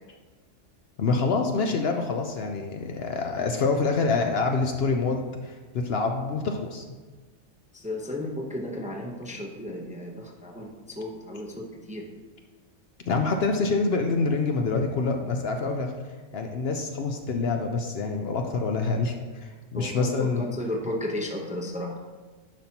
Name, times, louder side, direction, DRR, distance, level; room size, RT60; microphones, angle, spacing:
voice 1, 1.0-6.8 13.1-15.9 16.3-20.5, left 4 dB, 60° left, 4 dB, 0.8 m, -26 dB
voice 2, 7.7-12.1 19.7-22.0, left 1 dB, 5° right, -1 dB, 0.7 m, -34 dB
10.5 x 5.7 x 2.9 m, 1.3 s
omnidirectional pair, 1.3 m